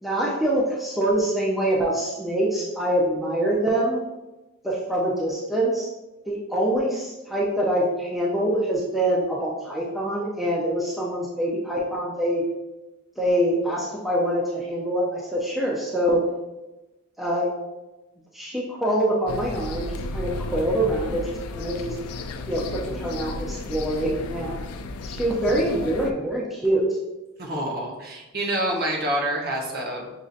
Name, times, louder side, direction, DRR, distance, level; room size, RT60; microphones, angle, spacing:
voice 1, 0.0-4.0 4.6-5.9 6.3-12.5 13.2-16.2 17.2-17.5 18.3-22.0 22.5-24.6 25.0-26.8, right 1 dB, ahead, -5 dB, 0.4 m, -25 dB
sound 1, 19.3-26.1, left 2 dB, 85° left, 0.3 m, -33 dB
voice 2, 27.4-30.1, right 1 dB, 45° right, -2 dB, 0.8 m, -27 dB
6.1 x 2.6 x 2.4 m, 1.1 s
head